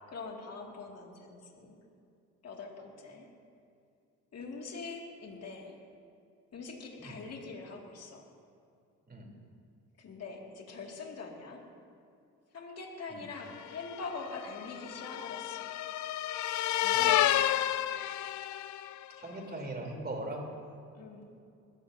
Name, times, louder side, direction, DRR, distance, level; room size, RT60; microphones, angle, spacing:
voice 1, 0.1-1.8 2.4-3.3 4.3-5.8 6.5-8.2 10.0-11.6 12.5-15.7 16.8-17.6 21.0-21.3, left 4 dB, 55° left, 0 dB, 2.4 m, -43 dB
sound 1, 13.6-19.0, left 13 dB, 75° left, 0.5 m, -31 dB
voice 2, 19.2-20.5, right 2 dB, 30° right, 0 dB, 3.6 m, -40 dB
21.0 x 15.0 x 2.8 m, 2.5 s
cardioid pair, 90°, 30 cm